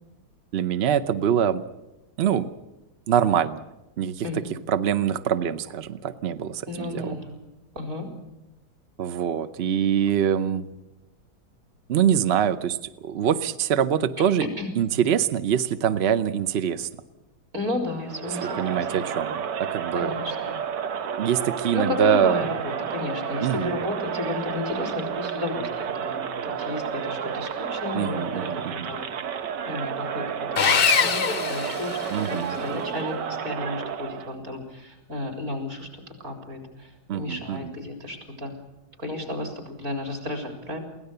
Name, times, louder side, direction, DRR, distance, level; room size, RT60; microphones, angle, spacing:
voice 1, 0.5-1.6 2.2-2.5 3.1-3.6 4.0-7.2 9.0-10.7 11.9-14.5 14.7-16.9 18.4-20.1 21.2-22.5 23.4-23.8 27.9-28.9 32.1-32.5 37.1-37.7, right 9 dB, 85° right, 12 dB, 0.5 m, -24 dB
voice 2, 6.7-7.4 7.7-8.1 14.6-14.7 17.5-18.9 19.9-20.6 21.7-29.0 29.6-35.9 36.2-38.5 39.0-40.8, left 2 dB, 40° right, 4 dB, 4.3 m, -33 dB
Crowd, 18.1-34.4, right 7 dB, 60° right, 1.5 m, -31 dB
Sawing, 30.6-32.5, left 6 dB, 65° left, 0.5 m, -23 dB
23.0 x 17.0 x 6.8 m, 0.99 s
omnidirectional pair, 2.2 m